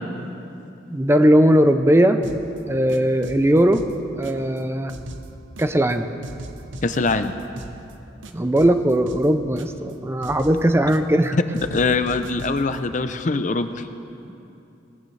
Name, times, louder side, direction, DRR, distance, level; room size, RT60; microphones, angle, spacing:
voice 1, 0.9-2.2 2.7-3.8 4.2-4.9 5.6-6.1 8.3-11.4, right 1 dB, 15° right, 8 dB, 0.5 m, -18 dB
sound 1, 2.2-2.6 2.9-4.6 4.9-5.9 6.2-7.9 8.2-9.9 10.2-11.3 11.5-12.8, right 1 dB, 85° right, 0.9 m, -38 dB
voice 2, 6.8-7.4 11.7-13.8, left 3 dB, 40° left, 10 dB, 0.5 m, -23 dB
20.0 x 15.5 x 3.3 m, 2.8 s
head